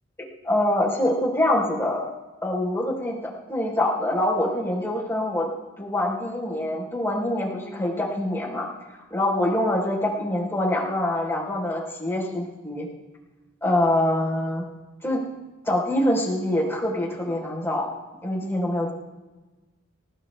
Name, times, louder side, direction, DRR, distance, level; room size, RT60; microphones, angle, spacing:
voice 1, 0.4-2.1 2.4-5.5 5.8-8.7 9.1-12.9 13.6-14.6 15.0-15.2 15.6-17.9 18.2-18.9, left 1 dB, 15° left, -2 dB, 4.1 m, -25 dB
28.5 x 17.0 x 2.3 m, 1.2 s
head